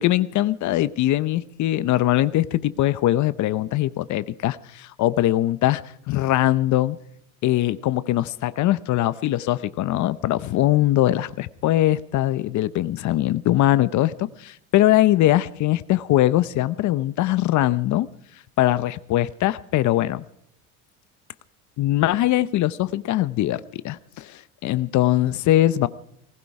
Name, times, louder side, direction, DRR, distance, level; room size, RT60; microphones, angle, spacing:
voice 1, 0.0-5.8 6.1-7.0 7.4-18.1 18.6-20.3 21.8-25.9, left 14 dB, 50° left, 16 dB, 0.7 m, -21 dB
19.5 x 15.0 x 4.8 m, 0.70 s
supercardioid pair, 115°, 37 cm